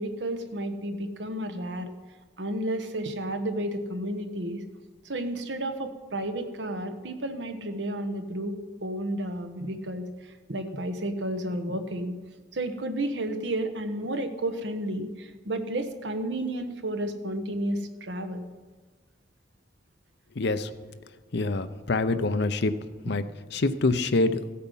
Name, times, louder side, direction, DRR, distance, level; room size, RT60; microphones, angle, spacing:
voice 1, 0.0-1.9 2.4-4.6 5.0-12.2 12.5-18.5 23.1-23.2, right 1 dB, 65° right, 7 dB, 1.2 m, -32 dB
voice 2, 20.4-20.7 21.3-22.7 23.0-23.2 23.5-24.4, left 2 dB, 65° left, 11 dB, 0.7 m, -25 dB
15.5 x 8.6 x 5.5 m, 1.3 s
head